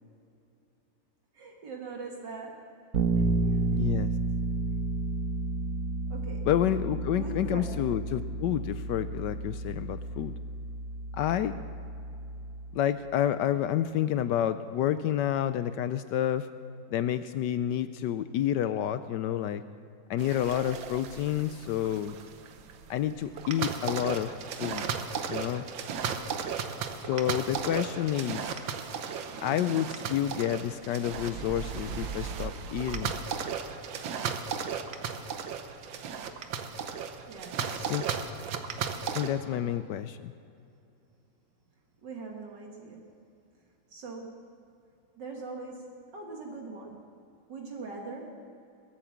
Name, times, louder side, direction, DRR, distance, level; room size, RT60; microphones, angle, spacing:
voice 1, 1.3-2.6 3.1-3.7 6.1-6.5 7.1-7.7 37.3-38.0 39.5-39.8 42.0-43.1 43.9-44.4 45.2-47.0 47.5-48.3, right 4 dB, 65° right, 0 dB, 2.2 m, -42 dB
Bass guitar, 2.9-12.8, right 3 dB, 50° right, 1.4 m, -31 dB
voice 2, 3.7-4.1 6.5-10.3 11.1-11.5 12.7-16.5 16.9-19.6 20.1-22.2 22.9-24.3 24.6-24.8 25.3-25.6 27.0-28.5 29.4-33.1 37.9-38.0 39.1-40.3, left 11 dB, 75° left, 12 dB, 1.1 m, -29 dB
sound 1, 20.2-39.3, right 6 dB, 90° right, 1.7 m, -35 dB
21.5 x 8.7 x 7.3 m, 2.6 s
omnidirectional pair, 2.1 m